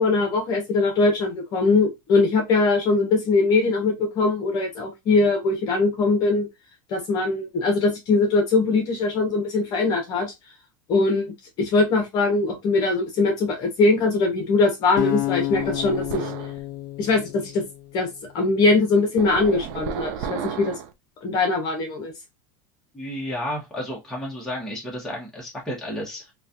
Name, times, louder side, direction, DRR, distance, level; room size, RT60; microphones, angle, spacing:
voice 1, 0.0-6.5 6.9-10.3 10.9-16.3 17.0-17.6 17.9-18.1 18.3-20.8 21.2-22.1, left 3 dB, 40° left, 0.9 m, -21 dB
sound 1, 15.0-18.1, left 16 dB, 65° left, 0.4 m, -30 dB
sound 2, 15.5-16.6 19.2-20.9, right 8 dB, 55° right, 0.4 m, -33 dB
voice 2, 22.9-26.3, equal, 5° left, 1.1 m, -32 dB
3.1 x 2.3 x 2.5 m
supercardioid pair, 155°, 11 cm